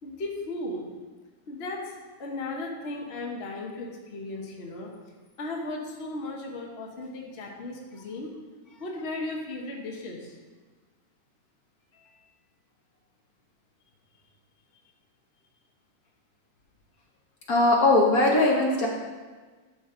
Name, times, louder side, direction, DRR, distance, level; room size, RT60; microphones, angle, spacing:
voice 1, 0.0-0.9 1.5-4.9 5.4-8.3 8.8-10.4, left 2 dB, 40° left, -1 dB, 1.2 m, -36 dB
voice 2, 17.5-18.9, left 2 dB, 55° left, -1 dB, 1.4 m, -20 dB
11.5 x 6.0 x 3.8 m, 1.4 s
omnidirectional pair, 2.0 m